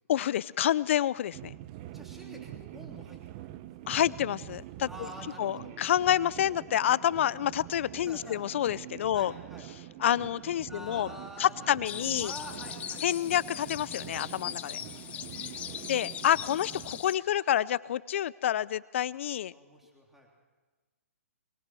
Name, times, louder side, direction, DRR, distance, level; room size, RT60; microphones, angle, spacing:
voice 1, 0.1-1.5 3.9-4.9 5.4-9.3 10.0-11.1 11.4-12.3 13.0-14.8 15.9-19.5, left 11 dB, 55° left, 20 dB, 0.6 m, -28 dB
sound 1, 1.3-17.0, right 14 dB, 30° right, 0.7 m, -45 dB
voice 2, 1.9-3.7 4.8-5.8 8.0-8.7 9.1-9.7 10.7-11.7 11.9-13.0 14.9-15.3 15.7-15.9 19.5-20.3, equal, 5° right, -1 dB, 3.4 m, -47 dB
sound 2, 11.9-17.2, left 10 dB, 15° left, 0.7 m, -40 dB
22.0 x 19.0 x 6.3 m, 1.3 s
hypercardioid pair, 145°, 8 cm